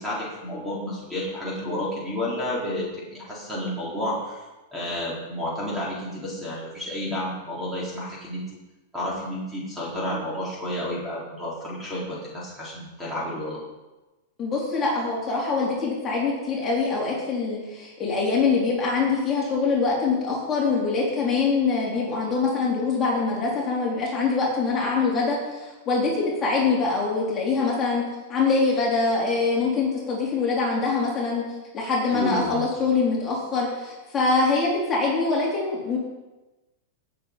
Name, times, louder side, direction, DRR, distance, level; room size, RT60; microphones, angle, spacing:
voice 1, 0.0-4.5 4.7-8.4 8.9-13.6 32.1-32.8, left 1 dB, 5° right, -6 dB, 4.2 m, -31 dB
voice 2, 14.4-28.0 28.3-31.4 31.7-36.0, left 4 dB, 20° left, -5 dB, 4.2 m, -24 dB
18.0 x 7.8 x 5.4 m, 1.1 s
supercardioid pair, 145°, 0 cm